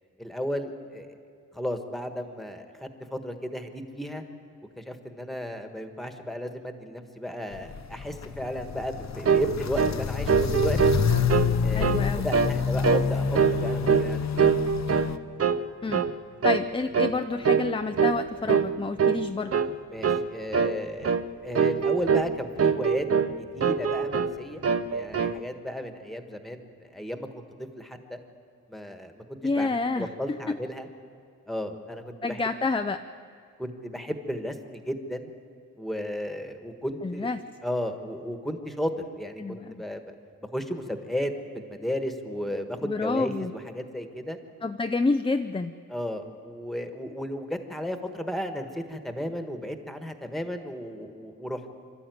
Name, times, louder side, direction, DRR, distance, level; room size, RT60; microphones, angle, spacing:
voice 1, 0.2-1.1 1.5-4.2 4.8-11.0 11.6-14.4 19.9-21.1 21.4-23.1 23.5-24.6 24.9-28.2 28.7-30.9 31.5-32.4 33.6-35.3 35.8-37.3 37.6-40.1 40.4-44.4 45.9-51.6, equal, ahead, 6 dB, 1.4 m, -34 dB
Walk footsteps, 7.5-15.2, left 7 dB, 55° left, 0.8 m, -28 dB
sound 1, 9.2-9.5 9.8-10.0 10.3-11.5 11.8-12.0 12.3-12.6 12.8-13.1 13.3-14.1 14.4-15.1 15.4-15.6 15.9-16.1 16.4-16.6 16.9-17.2 17.4-17.7 18.0-18.2 18.5-18.7 19.0-19.2 19.5-19.7 20.0-20.3 20.5-20.8 21.0-21.2 21.5-22.3 22.6-23.3 23.6-24.3 24.6-25.4, right 6 dB, 45° right, 0.7 m, -23 dB
voice 2, 11.7-12.3 15.8-16.0 16.4-19.5 29.4-30.1 30.5-30.6 32.2-33.0 37.0-37.4 39.4-39.8 42.8-43.5 44.6-45.7, left 3 dB, 15° left, 8 dB, 0.4 m, -28 dB
26.5 x 13.0 x 9.4 m, 2.4 s
wide cardioid pair, 150°, 32 cm